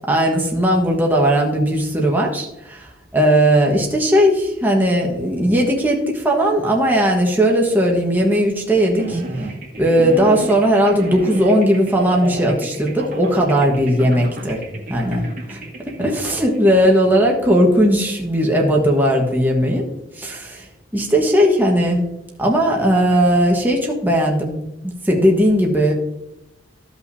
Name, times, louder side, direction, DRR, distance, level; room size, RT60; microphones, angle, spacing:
voice 1, 0.1-9.2 9.8-14.6 14.9-15.6 16.0-19.8 20.1-22.1 22.4-25.9, equal, 10° right, -1 dB, 1.4 m, -17 dB
sound 1, 8.9-17.2, right 2 dB, 50° right, 1.9 m, -31 dB
15.0 x 5.7 x 2.8 m, 0.91 s
head